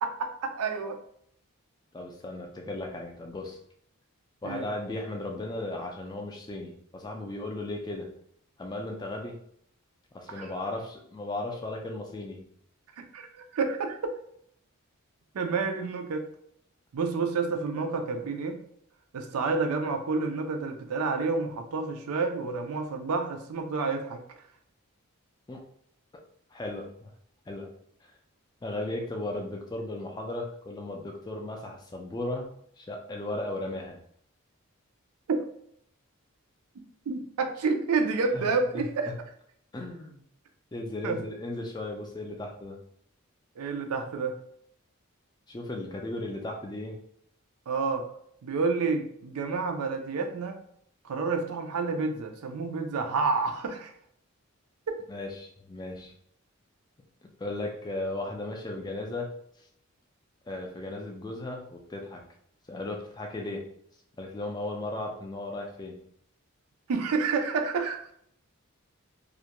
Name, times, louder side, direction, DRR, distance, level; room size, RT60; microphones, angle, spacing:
voice 1, 0.0-1.0 4.4-4.7 10.3-10.6 13.1-14.2 15.3-16.3 16.9-18.6 19.1-24.2 35.3-35.5 37.1-39.1 41.0-41.2 43.6-44.3 47.7-48.1 48.4-50.6 51.0-53.9 66.9-68.1, right 4 dB, 90° right, 5 dB, 0.4 m, -29 dB
voice 2, 1.9-3.6 4.4-8.2 8.6-9.4 10.1-12.5 25.5-25.6 26.5-27.1 27.5-27.7 28.6-32.5 32.8-34.0 38.3-38.5 38.7-39.1 39.7-40.2 40.7-42.8 45.5-47.0 55.1-56.1 57.2-59.3 59.6-59.7 60.5-62.2 62.7-63.7 64.2-66.0, left 2 dB, 20° left, 1 dB, 0.3 m, -36 dB
2.4 x 2.1 x 2.8 m, 0.67 s
head